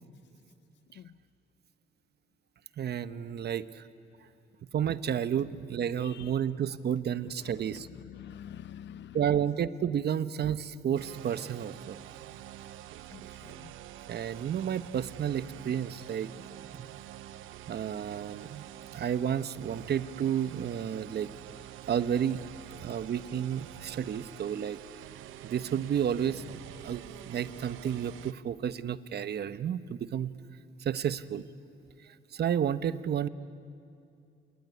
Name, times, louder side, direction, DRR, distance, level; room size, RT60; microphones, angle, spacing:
voice 1, 2.8-3.8 4.7-7.9 9.1-12.0 14.1-16.3 16.7-17.0 17.7-18.6 18.9-21.3 21.9-22.4 22.8-24.8 25.4-26.4 26.8-30.3 30.8-31.4 32.0-33.3, right 9 dB, 55° right, 1.0 m, -31 dB
voice 2, 6.0-6.4 7.4-9.2 13.1-13.7, left 10 dB, 65° left, 0.7 m, -47 dB
sound 1, 10.9-28.3, right 12 dB, 90° right, 0.8 m, -47 dB
26.5 x 20.0 x 9.8 m
cardioid pair, 90°, 20 cm